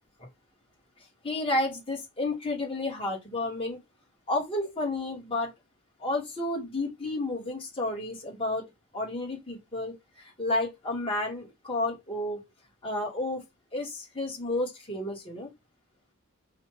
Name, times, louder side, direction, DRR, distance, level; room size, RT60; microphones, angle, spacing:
voice 1, 1.2-3.8 4.3-5.5 6.0-12.4 12.8-13.4 13.7-15.5, left 2 dB, 25° left, 2.0 m, -31 dB
5.6 x 2.8 x 3.2 m
head